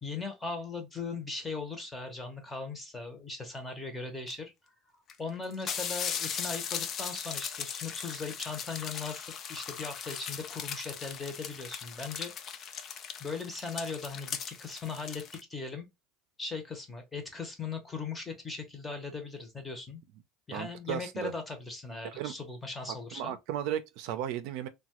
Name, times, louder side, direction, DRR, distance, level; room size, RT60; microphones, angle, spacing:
voice 1, 0.0-4.5 5.2-12.6 13.2-15.2 15.5-15.9 16.4-20.0 20.5-23.3, left 4 dB, 15° left, 0.8 m, -39 dB
sound 1, 4.3-4.4 5.1-5.2 5.4-15.4, left 7 dB, 35° left, 0.4 m, -38 dB
voice 2, 20.5-21.3 22.0-22.3 23.1-24.7, right 10 dB, 65° right, 0.4 m, -35 dB
2.9 x 2.2 x 2.9 m
supercardioid pair, 135°, 0 cm